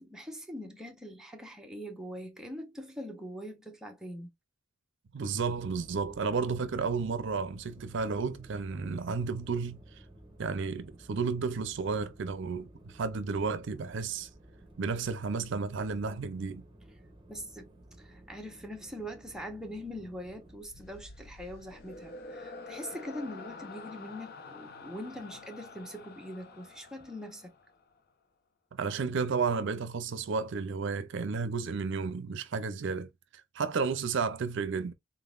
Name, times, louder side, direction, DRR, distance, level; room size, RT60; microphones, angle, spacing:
voice 1, 0.0-4.3 17.3-17.7 18.0-27.5, equal, 5° right, 0.9 m, -42 dB
voice 2, 5.1-10.0 10.4-14.3 14.8-16.6 28.7-33.1 33.5-34.9, right 5 dB, 65° right, 0.5 m, -32 dB
sound 1, 5.4-20.6, right 1 dB, 25° right, 1.1 m, -54 dB
sound 2, 20.6-28.0, left 3 dB, 55° left, 0.6 m, -48 dB
3.8 x 3.7 x 2.4 m
head